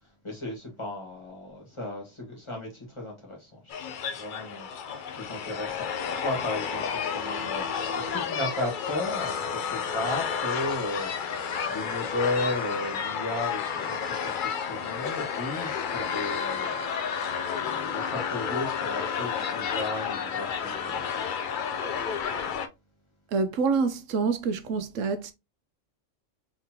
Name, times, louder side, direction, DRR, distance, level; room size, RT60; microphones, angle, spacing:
voice 1, 0.0-3.6 4.1-17.3 17.5-21.0, left 2 dB, 25° left, 1.7 m, -35 dB
sound 1, 3.7-22.7, left 7 dB, 60° left, 0.5 m, -31 dB
voice 2, 23.3-25.3, right 4 dB, 85° right, 1.0 m, -26 dB
3.8 x 3.6 x 2.8 m
omnidirectional pair, 1.3 m